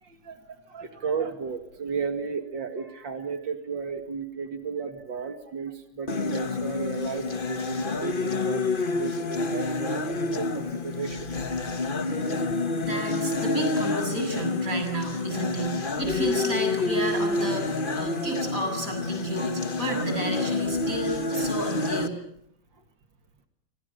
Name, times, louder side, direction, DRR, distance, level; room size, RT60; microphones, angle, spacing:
voice 1, 0.0-11.5 12.4-12.7, right 5 dB, 75° right, 6 dB, 2.7 m, -34 dB
sound 1, 6.1-22.1, left 3 dB, 30° left, 1.3 m, -28 dB
voice 2, 12.8-22.2, right 1 dB, 45° right, 5 dB, 7.8 m, -31 dB
29.5 x 25.0 x 6.7 m, 0.70 s
omnidirectional pair, 2.0 m